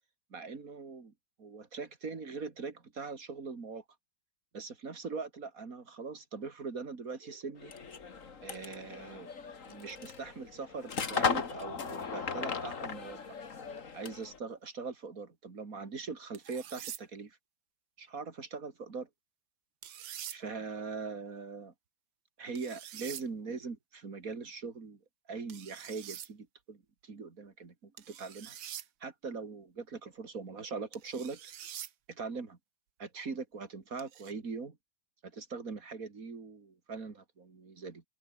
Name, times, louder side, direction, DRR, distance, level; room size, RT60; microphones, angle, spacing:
voice 1, 0.3-1.1 1.4-3.8 4.5-7.7 8.4-9.3 9.6-13.2 13.9-17.4 18.0-19.1 20.3-21.7 22.4-25.0 25.3-28.6 29.0-31.4 32.1-32.6 33.0-34.8 35.2-38.0, right 4 dB, 40° right, 3.0 m, -41 dB
sound 1, 7.6-14.4, left 5 dB, 35° left, 2.1 m, -37 dB
sound 2, 16.3-17.0 19.8-20.4 22.6-23.2 25.5-26.3 28.0-28.9 30.9-31.9 34.0-34.3, right 10 dB, 65° right, 1.9 m, -45 dB
open air
omnidirectional pair, 2.4 m